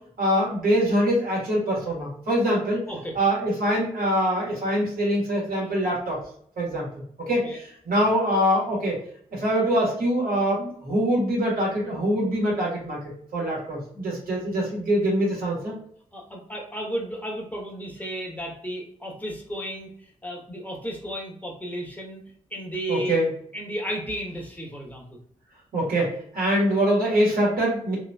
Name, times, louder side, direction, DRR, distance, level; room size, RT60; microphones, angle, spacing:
voice 1, 0.2-2.8 3.1-6.2 6.6-7.4 7.9-9.0 9.3-15.7 22.9-23.3 25.7-28.0, equal, 70° right, -5 dB, 1.3 m, -24 dB
voice 2, 16.1-22.2 22.5-23.2 23.5-25.0, right 1 dB, 10° left, -1 dB, 1.0 m, -33 dB
2.7 x 2.5 x 2.2 m, 0.62 s
supercardioid pair, 40°, 15 cm